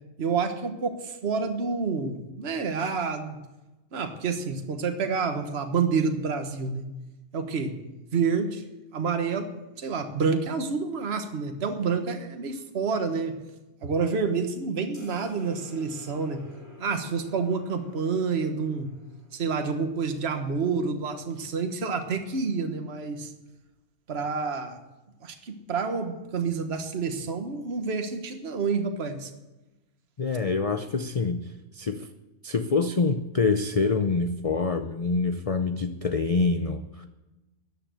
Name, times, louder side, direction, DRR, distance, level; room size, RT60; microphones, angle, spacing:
voice 1, 0.2-3.4 3.9-6.9 7.3-7.8 8.1-8.6 8.9-9.5 9.8-13.4 13.8-16.4 16.8-18.9 19.3-23.3 24.1-24.8 25.2-29.3, right 5 dB, 50° right, 6 dB, 1.5 m, -28 dB
sound 1, 14.9-19.8, equal, 60° left, 6.3 m, -50 dB
voice 2, 30.2-31.5 31.7-32.1 32.4-37.1, left 4 dB, 45° left, 8 dB, 0.5 m, -26 dB
13.5 x 9.2 x 7.7 m, 1.0 s
omnidirectional pair, 1.5 m